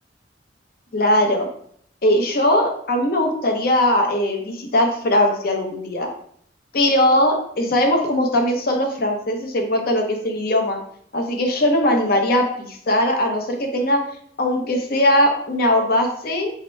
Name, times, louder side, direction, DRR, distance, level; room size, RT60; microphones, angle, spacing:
voice 1, 0.9-1.5 2.0-6.1 6.7-10.8 11.1-14.0 14.4-16.5, left 1 dB, 55° left, 3 dB, 0.7 m, -20 dB
3.0 x 2.9 x 4.4 m, 0.64 s
head